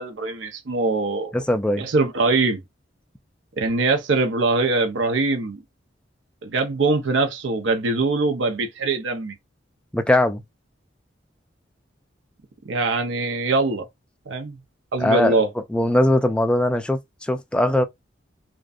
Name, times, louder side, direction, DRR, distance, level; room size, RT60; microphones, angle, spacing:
voice 1, 0.0-1.3 1.8-2.6 3.5-5.6 6.4-9.3 12.7-13.9 14.3-14.6 14.9-15.5, right 3 dB, 90° right, 0.6 m, -22 dB
voice 2, 1.3-1.9 9.9-10.4 15.0-15.4 15.7-17.8, left 1 dB, 5° left, 0.3 m, -20 dB
2.5 x 2.2 x 2.4 m
head